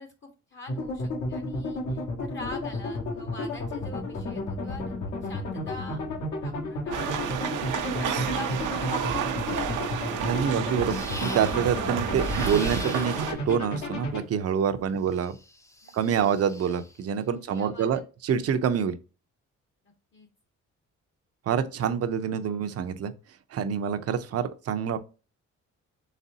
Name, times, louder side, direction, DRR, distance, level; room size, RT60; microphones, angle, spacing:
voice 1, 0.0-4.9 5.2-6.0 6.4-7.1 7.8-9.7 14.8-15.0 15.8-16.3 17.3-18.0 20.1-20.3, left 3 dB, 40° left, 0.8 m, -44 dB
sound 1, 0.7-14.2, left 2 dB, 75° left, 1.4 m, -32 dB
sound 2, 6.9-13.3, right 7 dB, 85° right, 0.7 m, -30 dB
voice 2, 10.2-15.3 15.9-19.0 21.5-23.1 23.5-25.0, right 7 dB, 55° right, 0.6 m, -27 dB
snakey woman, 10.9-11.7 12.1-13.4 15.1-17.0, left 2 dB, 10° left, 0.5 m, -42 dB
4.1 x 3.3 x 2.7 m
cardioid pair, 90°, 30 cm